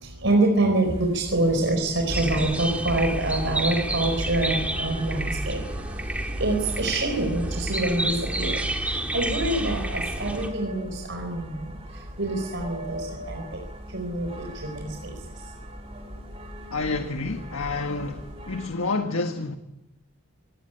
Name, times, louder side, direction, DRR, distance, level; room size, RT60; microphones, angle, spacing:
voice 1, 0.0-5.6 6.4-11.7 12.2-13.4 13.9-15.1, right 2 dB, 65° right, 4.7 m, -26 dB
sound 1, 0.8-18.7, equal, 30° right, 3.5 m, -41 dB
sound 2, 2.1-10.5, right 1 dB, 5° right, 2.1 m, -29 dB
voice 2, 16.7-19.5, left 3 dB, 85° left, 1.5 m, -29 dB
26.5 x 18.5 x 9.1 m
head